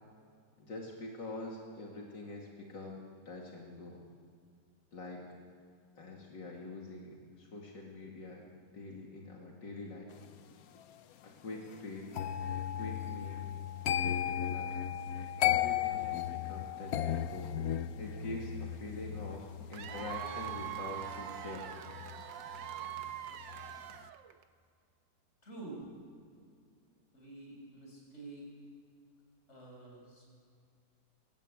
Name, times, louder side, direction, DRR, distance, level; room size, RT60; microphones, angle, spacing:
voice 1, 0.6-4.0 4.9-5.3 6.0-8.5 8.7-10.1 11.2-12.1 12.7-13.5 14.0-14.8 15.1-17.6 18.0-21.7, left 2 dB, 80° left, -1 dB, 3.2 m, -45 dB
sound 1, 12.1-23.1 23.4-23.8, left 10 dB, 60° left, 1.1 m, -36 dB
Cheering / Applause / Crowd, 19.7-24.4, right 11 dB, 85° right, 1.7 m, -42 dB
voice 2, 25.4-25.9 27.1-28.5 29.5-30.2, right 2 dB, 40° left, -1 dB, 6.6 m, -48 dB
24.5 x 18.5 x 8.7 m, 2.2 s
omnidirectional pair, 1.9 m